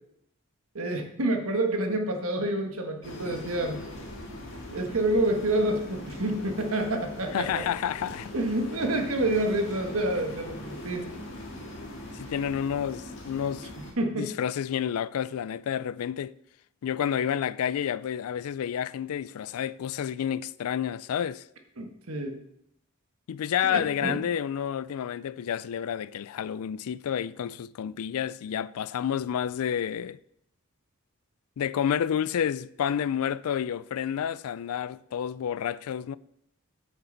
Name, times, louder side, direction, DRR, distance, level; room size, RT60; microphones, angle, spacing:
voice 1, 0.7-3.8 4.7-7.6 8.3-11.1 14.0-14.3 21.8-22.4 23.7-24.2, right 1 dB, 75° right, 1.4 m, -28 dB
sound 1, 3.0-13.9, left 1 dB, 55° left, 1.9 m, -41 dB
voice 2, 7.3-8.3 12.2-13.7 14.1-16.3 16.8-21.4 23.3-30.2 31.6-36.2, left 8 dB, 80° left, 0.3 m, -30 dB
9.0 x 7.0 x 4.0 m
head